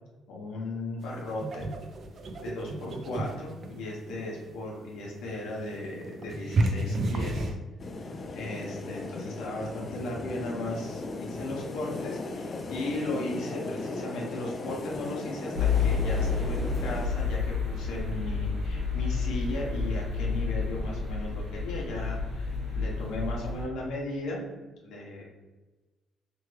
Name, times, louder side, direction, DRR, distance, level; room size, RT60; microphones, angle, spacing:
voice 1, 0.3-1.7 2.4-7.5 8.3-24.4 24.8-25.2, left 1 dB, 85° left, -2 dB, 0.7 m, -36 dB
sound 1, 1.0-7.6, right 2 dB, 45° right, 0.4 m, -33 dB
sound 2, 7.8-17.1, left 3 dB, 35° left, 0.3 m, -37 dB
sound 3, 15.6-23.6, left 5 dB, 85° right, 1.5 m, -30 dB
3.0 x 2.2 x 3.2 m, 1.2 s
cardioid pair, 125°, 0 cm